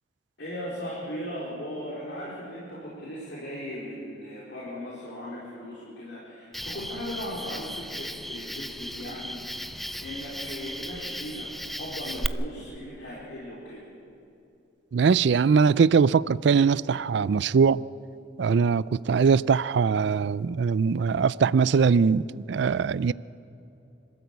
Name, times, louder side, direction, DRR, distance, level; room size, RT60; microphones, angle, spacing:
voice 1, 0.4-11.5 11.8-13.8, equal, 60° left, 4.3 m, -38 dB
Cricket, 6.5-12.3, equal, ahead, 0.4 m, -36 dB
voice 2, 14.9-17.8 18.4-23.1, right 5 dB, 65° right, 0.4 m, -21 dB
25.5 x 13.5 x 8.3 m
head